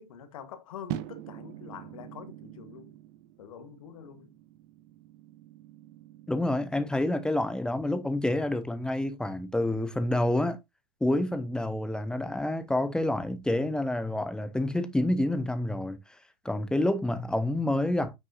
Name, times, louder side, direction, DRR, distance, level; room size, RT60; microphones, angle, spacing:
voice 1, 0.0-2.9 3.4-4.3, left 8 dB, 55° left, 1.5 m, -45 dB
sound 1, 0.9-7.1, right 13 dB, 40° right, 0.8 m, -44 dB
voice 2, 6.3-10.6 11.0-16.0 16.4-18.1, left 1 dB, 5° left, 0.8 m, -28 dB
9.0 x 6.3 x 2.7 m
figure-of-eight pair, 100°, 21 cm